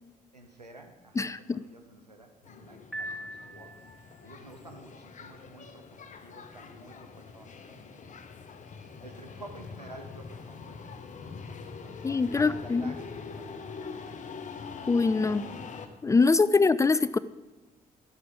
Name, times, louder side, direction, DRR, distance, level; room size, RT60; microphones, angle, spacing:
voice 1, 0.3-3.9 4.2-8.1 9.0-13.1 13.4-14.1 16.5-16.7, right 2 dB, 90° right, 4 dB, 0.7 m, -51 dB
voice 2, 1.2-1.6 12.0-12.9 14.9-15.5 16.0-17.2, left 4 dB, 15° left, 17 dB, 0.3 m, -24 dB
sound 1, 2.4-15.9, left 5 dB, 40° left, 0.9 m, -44 dB
Piano, 2.9-4.2, equal, ahead, 3.0 m, -40 dB
12.5 x 6.3 x 4.9 m, 1.2 s
figure-of-eight pair, 40°, 20 cm